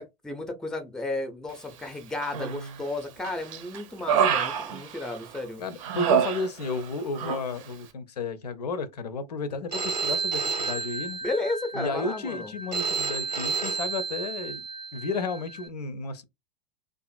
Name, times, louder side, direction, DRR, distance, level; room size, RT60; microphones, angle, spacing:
voice 1, 0.0-5.6 11.2-12.5, left 2 dB, 5° left, 0.5 m, -33 dB
Human voice, 2.2-2.8 3.2-5.4 5.8-6.9 7.2-7.4, right 8 dB, 50° right, 0.6 m, -27 dB
voice 2, 5.6-11.2 11.7-16.2, left 3 dB, 75° left, 0.5 m, -33 dB
Telephone, 9.7-15.7, right 4 dB, 85° right, 0.8 m, -32 dB
2.5 x 2.4 x 2.3 m
figure-of-eight pair, 90°, 21 cm